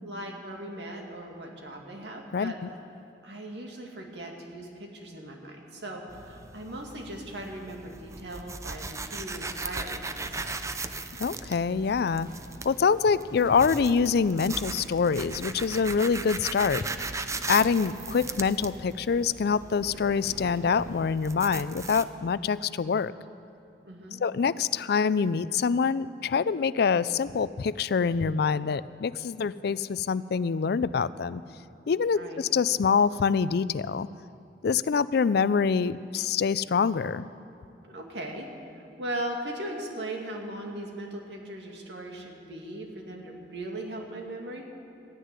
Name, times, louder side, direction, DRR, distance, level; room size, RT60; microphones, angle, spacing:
voice 1, 0.0-2.6 3.2-10.6 23.8-24.2 32.1-32.4 37.9-38.5 38.8-44.7, right 1 dB, 75° right, 1 dB, 2.3 m, -38 dB
voice 2, 2.3-2.7 11.2-12.3 12.6-16.8 17.5-23.1 24.2-31.4 31.9-34.1 34.6-37.3, left 5 dB, 65° left, 17 dB, 0.4 m, -25 dB
sound 1, 6.1-22.0, right 3 dB, 20° right, 0.5 m, -38 dB
sound 2, 10.2-22.6, right 1 dB, 55° right, 1.7 m, -50 dB
13.5 x 10.0 x 9.7 m, 2.6 s
head